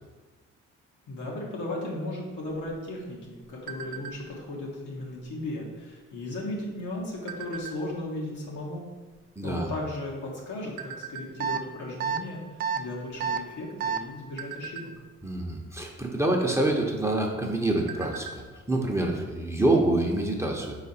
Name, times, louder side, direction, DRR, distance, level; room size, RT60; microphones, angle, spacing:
voice 1, 1.1-8.9 9.4-14.9, left 1 dB, 80° left, -3 dB, 1.6 m, -36 dB
sound 1, 2.5-4.5 5.0-5.2 5.5-5.9 6.6-8.1 8.7-8.8 9.0-10.3 10.8-11.3 11.8-12.0 12.4-12.6 13.0-13.5 14.0-15.4 16.5-16.6 17.0-17.1 17.5-18.5 18.8-18.9 19.3-19.4, right 7 dB, 80° right, 0.6 m, -41 dB
voice 2, 9.4-9.7 15.2-20.7, right 2 dB, 10° right, 0 dB, 0.8 m, -26 dB
sound 2, 11.4-11.6 12.0-12.2 12.6-12.8 13.2-13.4 13.8-14.0, right 7 dB, 30° right, 0.4 m, -27 dB
4.8 x 4.5 x 4.3 m, 1.3 s
cardioid pair, 90°, 30 cm